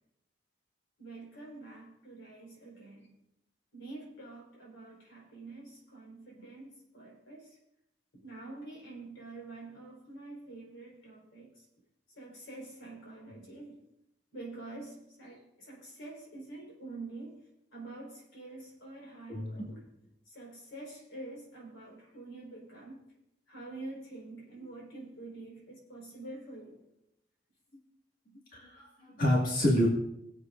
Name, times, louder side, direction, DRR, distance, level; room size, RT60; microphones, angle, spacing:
voice 1, 1.0-3.1 3.7-7.6 8.1-11.6 12.1-13.8 14.3-17.4 17.7-19.9 20.3-23.0 23.5-26.8, right 2 dB, 90° left, -3 dB, 4.6 m, -47 dB
voice 2, 19.3-19.7 28.5-29.9, equal, 45° left, -4 dB, 2.1 m, -28 dB
20.0 x 8.0 x 2.6 m, 0.83 s
head